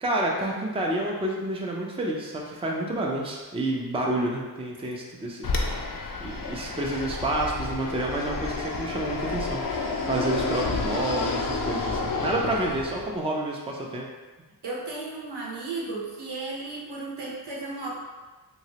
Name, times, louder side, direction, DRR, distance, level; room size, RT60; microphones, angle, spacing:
voice 1, 0.0-5.9 6.2-14.1, right 1 dB, 15° right, -2 dB, 0.5 m, -29 dB
Fixed-wing aircraft airplane, 5.4-13.2, left 3 dB, 60° left, 0.5 m, -30 dB
voice 2, 14.6-18.0, right 3 dB, 85° right, -4 dB, 0.9 m, -34 dB
3.0 x 2.9 x 2.8 m, 1.3 s
wide cardioid pair, 80°, 39 cm